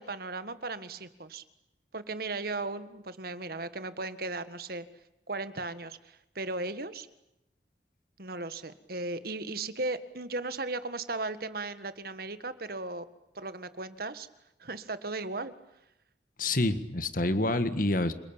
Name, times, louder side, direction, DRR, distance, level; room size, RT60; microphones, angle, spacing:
voice 1, 0.0-1.4 1.9-4.9 5.3-7.1 8.2-13.1 13.4-14.3 14.6-15.5, right 2 dB, 55° right, 12 dB, 1.7 m, -36 dB
voice 2, 16.4-18.1, left 2 dB, 50° left, 10 dB, 1.7 m, -27 dB
28.5 x 21.5 x 8.9 m, 0.86 s
head